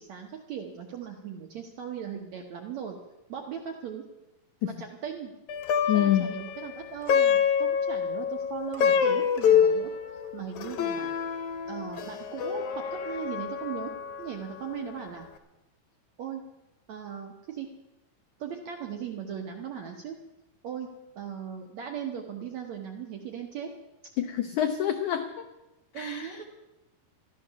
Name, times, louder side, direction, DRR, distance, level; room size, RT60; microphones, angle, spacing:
voice 1, 0.0-3.0 3.3-4.0 4.6-5.3 5.9-9.9 10.3-11.1 11.7-13.9 14.2-15.3 16.2-16.4 16.9-17.7 18.4-20.2 20.6-20.9 21.2-23.7 25.9-26.4, right 8 dB, 70° right, 2 dB, 1.7 m, -38 dB
Plucked string instrument, 5.5-14.9, left 7 dB, 65° left, 2.0 m, -27 dB
voice 2, 5.9-6.3 24.2-25.4 25.9-26.4, left 11 dB, 90° left, 7 dB, 1.7 m, -27 dB
13.5 x 12.5 x 6.8 m, 0.97 s
omnidirectional pair, 4.6 m